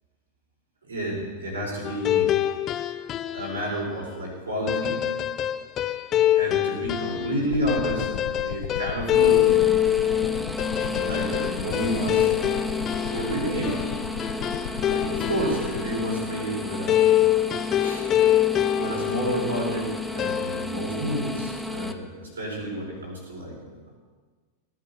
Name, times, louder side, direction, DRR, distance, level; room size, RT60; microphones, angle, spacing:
voice 1, 0.8-2.3 3.3-5.1 6.4-9.6 10.9-12.3 13.1-13.8 14.9-17.3 17.8-18.0 18.7-23.8, right 1 dB, 70° right, -2 dB, 5.6 m, -30 dB
sound 1, 1.8-3.7 4.7-15.8 16.9-19.8 20.2-20.7, left 12 dB, 30° left, 0.6 m, -24 dB
sound 2, 7.5-15.8, left 8 dB, 50° left, 1.1 m, -36 dB
sound 3, 9.1-21.9, left 2 dB, ahead, 1.1 m, -32 dB
18.5 x 9.4 x 7.1 m, 1.4 s
figure-of-eight pair, 90°, 0 cm